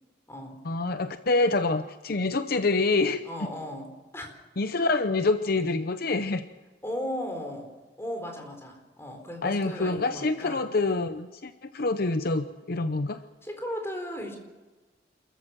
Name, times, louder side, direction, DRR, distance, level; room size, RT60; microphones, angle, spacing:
voice 1, 0.6-3.2 4.6-6.4 9.4-13.2, left 3 dB, 55° left, 10 dB, 0.8 m, -26 dB
voice 2, 3.2-4.3 6.8-7.7 8.0-10.7 13.4-14.4, equal, 15° left, 3 dB, 4.4 m, -36 dB
28.5 x 14.5 x 7.6 m, 1.2 s
head